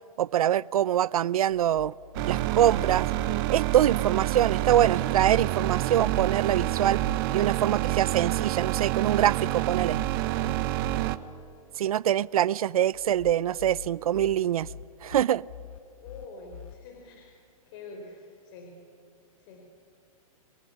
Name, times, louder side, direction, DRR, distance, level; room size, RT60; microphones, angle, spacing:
voice 1, 0.2-1.9 2.3-3.1 3.5-7.0 7.3-10.0 11.8-14.7 15.0-15.5, right 11 dB, 80° right, 0.6 m, -24 dB
sound 1, 1.5-3.4 5.3-7.2 9.1-11.0 12.9-16.7, left 8 dB, 65° left, 1.3 m, -45 dB
sound 2, 2.1-11.2, right 17 dB, 40° right, 1.1 m, -27 dB
voice 2, 11.0-11.6 12.3-12.8 15.9-17.4 17.7-18.8 19.4-19.7, left 3 dB, 45° left, 4.8 m, -47 dB
29.0 x 20.5 x 9.8 m
hypercardioid pair, 145°, 18 cm